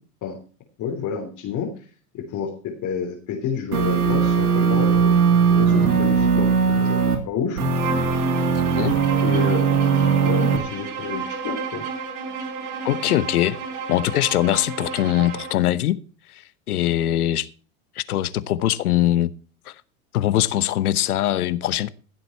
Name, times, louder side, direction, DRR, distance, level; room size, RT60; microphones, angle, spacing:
voice 1, 0.8-1.9 2.1-7.0 7.3-7.6 9.2-11.8, left 6 dB, 40° left, 3.4 m, -29 dB
sound 1, 3.7-7.2 7.6-10.6, right 6 dB, 85° right, 3.2 m, -19 dB
Bowed string instrument, 7.7-15.6, right 5 dB, 60° right, 4.5 m, -32 dB
voice 2, 8.5-9.0 12.8-13.6 13.9-16.0 16.3-17.5 18.0-19.3 19.7-19.8 20.1-21.9, left 13 dB, 80° left, 1.0 m, -22 dB
16.0 x 8.0 x 4.3 m
hypercardioid pair, 100°, 44 cm